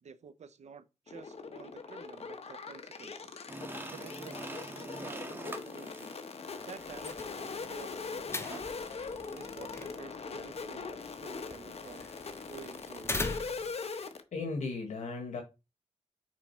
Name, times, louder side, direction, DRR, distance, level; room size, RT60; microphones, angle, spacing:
voice 1, 0.0-3.4 3.9-6.2 6.7-8.9 9.3-12.1 12.5-13.4, right 6 dB, 75° right, 0.7 m, -51 dB
sound 1, 1.1-14.2, left 4 dB, 60° left, 1.1 m, -41 dB
sound 2, 3.5-7.1 8.4-8.7, right 1 dB, 20° right, 1.4 m, -44 dB
sound 3, 6.8-13.8, left 2 dB, 20° left, 0.8 m, -42 dB
voice 2, 13.8-15.4, left 3 dB, 85° left, 1.4 m, -37 dB
6.2 x 4.7 x 4.4 m
wide cardioid pair, 90°, 12 cm